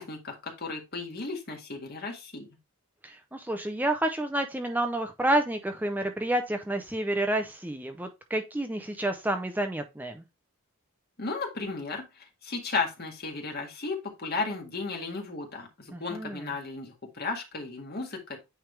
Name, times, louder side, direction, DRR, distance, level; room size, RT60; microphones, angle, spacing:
voice 1, 0.0-2.5 11.2-12.0 12.4-18.4, left 3 dB, 50° left, 1 dB, 1.7 m, -34 dB
voice 2, 3.0-10.2 15.9-16.4, right 1 dB, 10° right, 6 dB, 0.5 m, -29 dB
8.9 x 3.4 x 3.2 m, 0.24 s
head